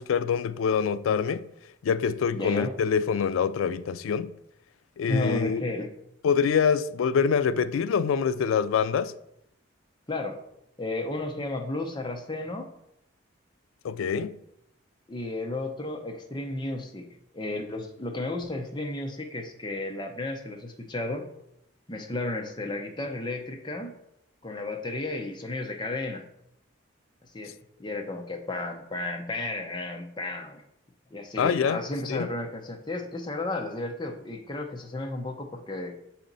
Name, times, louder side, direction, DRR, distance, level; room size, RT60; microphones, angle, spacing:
voice 1, 0.0-1.5 1.8-4.3 5.0-5.6 6.2-9.1 13.8-14.4 31.4-31.8 32.1-32.3, left 6 dB, 85° left, 0.3 m, -25 dB
voice 2, 2.3-2.7 5.1-5.9 10.1-10.4 10.8-12.7 15.1-17.1 17.3-21.3 21.9-24.0 24.4-26.2 27.3-27.5 27.8-30.6 31.1-35.9, left 2 dB, 20° left, 0.6 m, -33 dB
6.9 x 4.3 x 3.9 m
head